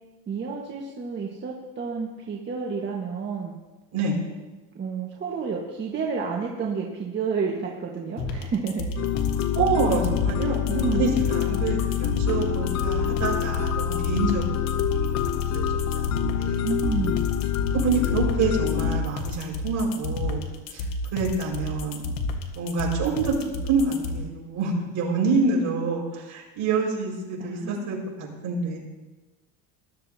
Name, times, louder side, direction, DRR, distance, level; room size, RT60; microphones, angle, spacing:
voice 1, 0.3-3.6 4.7-8.8 10.6-11.1 16.6-17.2 27.4-28.0, right 5 dB, 30° right, -2 dB, 1.5 m, -30 dB
sound 1, 8.2-24.2, left 2 dB, 65° left, 1.6 m, -31 dB
sound 2, 9.0-19.0, left 10 dB, 40° left, 0.8 m, -26 dB
voice 2, 9.5-10.6 10.9-15.1 15.5-16.6 17.7-20.5 20.7-20.8 21.1-22.0 22.6-23.3 23.7-28.8, right 4 dB, 50° right, -3 dB, 5.4 m, -27 dB
20.5 x 12.5 x 2.8 m, 1.2 s
cardioid pair, 130°, 38 cm